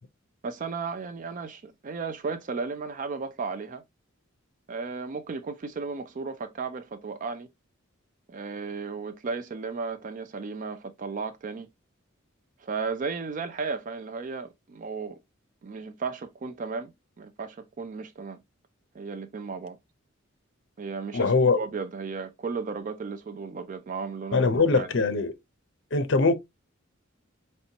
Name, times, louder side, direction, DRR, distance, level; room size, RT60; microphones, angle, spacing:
voice 1, 0.4-3.8 4.7-7.5 8.3-11.7 12.6-15.2 15.6-16.9 17.2-18.4 18.9-19.8 20.8-24.9, right 4 dB, 40° right, 0.4 m, -34 dB
voice 2, 21.1-21.6 24.3-25.3 25.9-26.3, left 4 dB, 60° left, 0.7 m, -22 dB
4.3 x 3.2 x 2.8 m
head